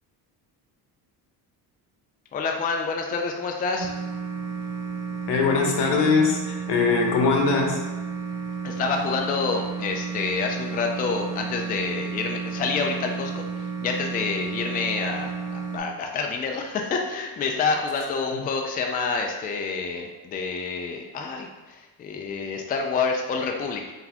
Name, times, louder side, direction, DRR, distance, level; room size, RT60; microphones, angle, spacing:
voice 1, 2.3-3.9 8.6-13.4 13.8-23.8, left 4 dB, 25° left, 2 dB, 0.3 m, -28 dB
sound 1, 3.8-15.8, right 6 dB, 50° right, 0.8 m, -32 dB
voice 2, 5.3-7.8, left 4 dB, 75° left, 2 dB, 0.9 m, -21 dB
3.9 x 3.5 x 2.9 m, 1.2 s
cardioid pair, 115°, 41 cm